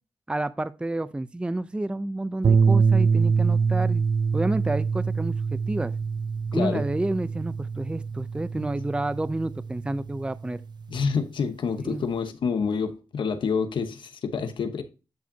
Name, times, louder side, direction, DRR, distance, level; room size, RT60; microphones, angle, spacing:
voice 1, 0.3-4.0 4.3-5.9 6.5-10.6 11.8-12.0, right 2 dB, 15° right, 0.5 m, -29 dB
sound 1, 2.4-10.8, right 5 dB, 60° right, 0.6 m, -25 dB
voice 2, 6.5-6.8 8.5-8.6 10.9-14.8, left 5 dB, 80° left, 1.1 m, -28 dB
10.5 x 4.9 x 2.8 m
cardioid pair, 65°, 8 cm